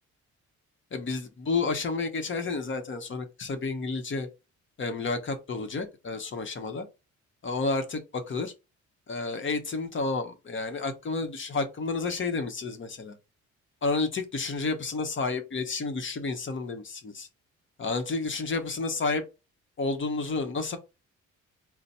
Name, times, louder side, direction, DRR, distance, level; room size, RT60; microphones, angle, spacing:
voice 1, 0.9-4.3 4.8-6.9 7.4-8.5 9.1-13.2 13.8-17.3 17.8-19.2 19.8-20.8, left 3 dB, 40° left, 7 dB, 1.0 m, -30 dB
4.0 x 2.2 x 4.2 m, 0.26 s
cardioid pair, 90°, 30 cm